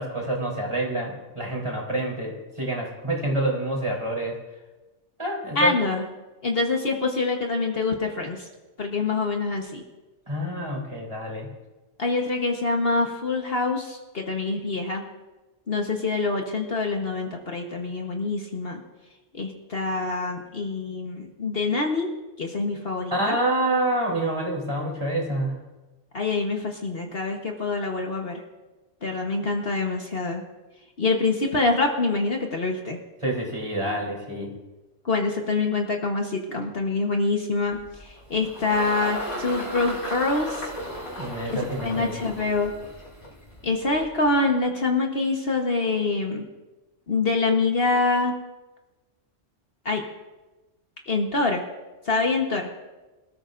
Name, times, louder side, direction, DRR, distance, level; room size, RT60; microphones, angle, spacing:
voice 1, 0.0-4.4 5.2-5.9 10.3-11.5 23.1-25.5 33.2-34.5 41.2-42.2, right 1 dB, 25° right, -3 dB, 3.8 m, -27 dB
voice 2, 5.5-6.0 6.4-8.5 8.8-9.8 12.0-15.0 15.7-18.8 19.3-22.1 22.4-23.3 26.1-28.4 29.0-30.4 31.0-33.0 35.0-40.7 41.5-42.7 43.6-46.4 47.1-48.4 49.8-50.0 51.1-51.6 52.0-52.7, left 3 dB, 55° left, 1 dB, 1.4 m, -25 dB
Engine, 37.7-44.3, equal, 80° left, 4.9 m, -36 dB
26.0 x 13.5 x 2.6 m, 1.1 s
omnidirectional pair, 1.2 m